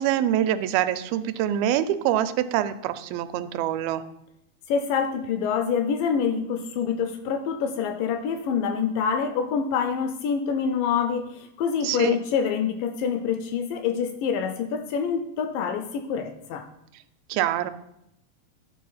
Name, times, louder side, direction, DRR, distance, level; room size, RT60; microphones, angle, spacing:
voice 1, 0.0-4.0 11.8-12.2 17.3-17.7, right 11 dB, 85° right, 11 dB, 2.4 m, -25 dB
voice 2, 4.7-16.7, left 6 dB, 80° left, 8 dB, 2.0 m, -26 dB
11.0 x 4.1 x 5.5 m, 0.82 s
omnidirectional pair, 4.2 m